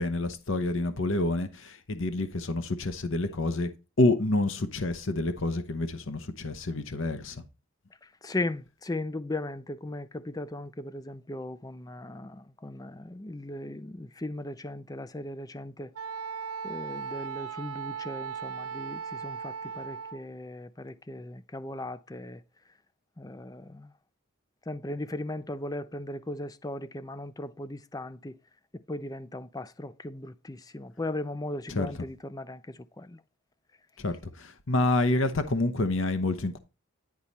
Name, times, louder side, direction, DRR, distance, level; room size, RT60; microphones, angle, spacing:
voice 1, 0.0-3.7 4.0-7.4 31.7-31.9 34.0-36.6, left 2 dB, 60° left, 1.0 m, -28 dB
voice 2, 8.2-15.9 16.6-22.4 23.2-23.9 24.7-28.4 28.9-32.6 33.0-33.2, left 2 dB, 15° left, 0.4 m, -37 dB
Wind instrument woodwind instrument, 15.9-20.2, right 6 dB, 85° right, 0.6 m, -37 dB
10.5 x 4.7 x 4.2 m
head